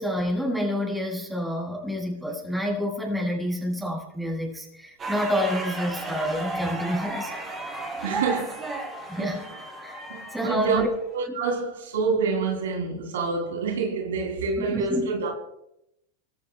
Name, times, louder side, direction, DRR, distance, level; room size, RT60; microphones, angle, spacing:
voice 1, 0.0-7.4 9.1-9.4 9.8-10.0 10.3-10.9 14.7-15.1, equal, 5° right, 7.2 m, -28 dB
sound 1, 5.0-11.1, right 2 dB, 20° right, 5.9 m, -34 dB
voice 2, 8.0-8.6 9.1-9.4 10.1-10.8 11.1-15.3, right 4 dB, 85° right, 3.6 m, -27 dB
25.5 x 15.0 x 2.4 m
hypercardioid pair, 120°, 0 cm